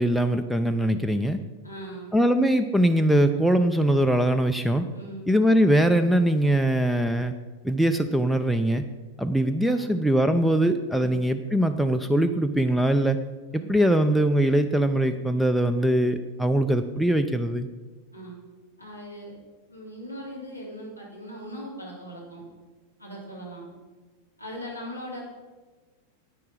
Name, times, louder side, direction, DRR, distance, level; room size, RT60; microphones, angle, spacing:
voice 1, 0.0-1.4 2.1-4.9 5.3-7.3 7.6-8.8 9.2-13.2 13.5-17.7, right 1 dB, ahead, 9 dB, 0.4 m, -22 dB
voice 2, 1.6-2.2 4.9-5.3 9.7-9.9 10.9-11.2 13.5-13.7 18.1-18.4 18.8-19.3 19.7-22.4 23.0-23.6 24.4-25.2, equal, 90° right, -4 dB, 3.3 m, -39 dB
10.5 x 8.9 x 4.7 m, 1.3 s
figure-of-eight pair, 90°, 0 cm